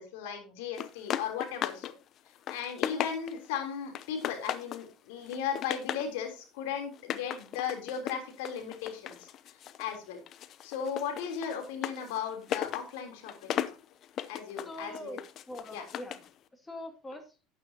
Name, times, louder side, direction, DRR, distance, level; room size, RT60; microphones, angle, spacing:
voice 1, 0.0-1.9 2.5-9.3 9.8-10.2 10.6-13.6 14.3-15.1 15.7-15.8, left 7 dB, 80° left, 4 dB, 3.4 m, -36 dB
sound 1, 0.8-1.9 2.3-3.5 3.9-4.9 5.2-6.1 6.9-10.0 10.3-16.3, left 10 dB, 50° left, 0.7 m, -37 dB
voice 2, 14.7-16.2 16.5-17.4, left 1 dB, 15° left, 6 dB, 2.3 m, -43 dB
12.5 x 9.1 x 2.9 m, 0.31 s
supercardioid pair, 95°, 0 cm